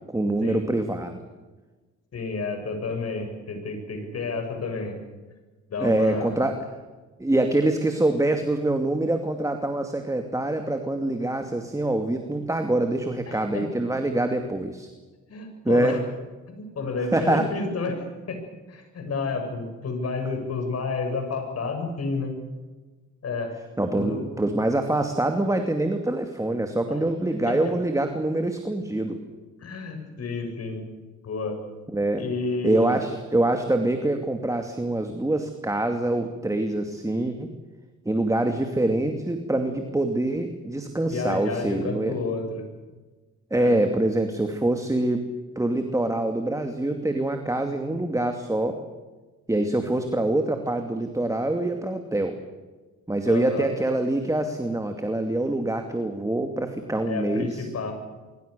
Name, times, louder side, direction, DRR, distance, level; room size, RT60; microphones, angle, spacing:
voice 1, 0.1-1.2 5.8-6.5 7.2-14.9 15.6-16.0 17.1-17.5 23.8-29.2 31.9-32.3 32.6-37.5 38.0-42.1 43.5-45.2 45.6-48.8 49.5-52.4 53.1-57.7, right 1 dB, 10° right, 5 dB, 2.6 m, -25 dB
voice 2, 2.1-4.9 5.7-6.4 13.3-13.7 15.3-16.0 16.5-18.4 18.7-22.3 23.2-23.5 23.9-24.2 26.9-27.0 27.5-27.7 29.6-30.8 31.2-31.6 32.2-33.0 41.1-42.7 43.6-43.8 53.3-53.7 57.1-57.9, left 3 dB, 55° left, 5 dB, 7.7 m, -30 dB
24.5 x 24.0 x 6.9 m, 1.2 s
cardioid pair, 90°, 30 cm